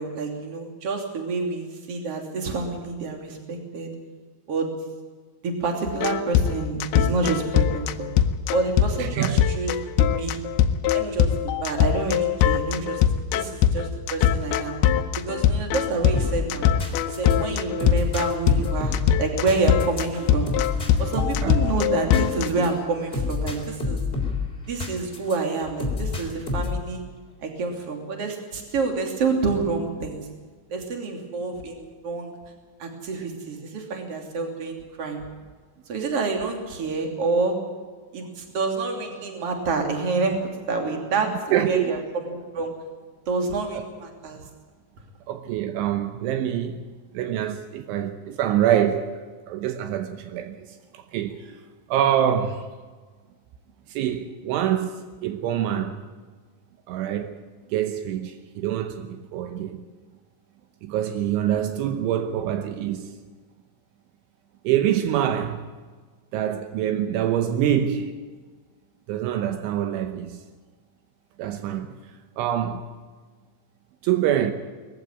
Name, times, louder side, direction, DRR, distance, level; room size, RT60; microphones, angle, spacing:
voice 1, 0.0-3.9 4.5-4.7 5.4-8.1 8.5-10.4 10.9-11.3 11.6-13.0 13.3-14.8 15.3-16.7 17.1-20.5 21.0-24.0 24.7-27.0 27.4-30.3 30.7-32.3 32.8-35.2 35.9-37.6 38.1-40.4 40.7-42.7 43.3-44.4, right 4 dB, 35° right, 3.3 m, -28 dB
sound 1, 5.9-22.7, left 9 dB, 90° left, 2.2 m, -22 dB
voice 2, 9.0-9.4 21.4-21.5 41.5-41.9 45.3-46.8 47.1-51.6 51.9-52.7 53.9-56.0 56.9-57.4 57.7-59.8 60.8-63.1 64.6-65.7 66.3-68.2 69.1-70.4 71.4-72.0 72.4-72.9 74.0-74.5, right 10 dB, 80° right, 3.3 m, -25 dB
sound 2, 16.1-25.4 25.8-26.9, left 4 dB, 15° left, 3.1 m, -29 dB
20.5 x 15.0 x 9.5 m
omnidirectional pair, 5.6 m